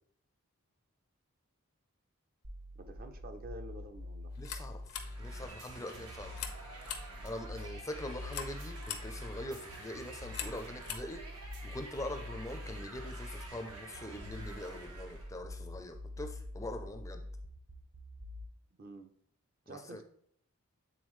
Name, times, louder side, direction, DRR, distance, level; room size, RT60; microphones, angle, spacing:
sound 1, 2.4-18.4, left 1 dB, 55° right, 0.9 m, -45 dB
voice 1, 2.7-4.3 18.8-19.1 19.7-20.0, right 1 dB, 40° right, 7 dB, 0.5 m, -48 dB
sound 2, 4.3-11.7, left 8 dB, 90° left, 0.8 m, -47 dB
voice 2, 4.4-6.4 7.2-17.2 19.7-20.0, left 1 dB, 15° left, 5 dB, 0.4 m, -43 dB
sound 3, 4.9-15.3, right 2 dB, 90° right, 1.3 m, -50 dB
8.1 x 3.9 x 3.1 m, 0.64 s
head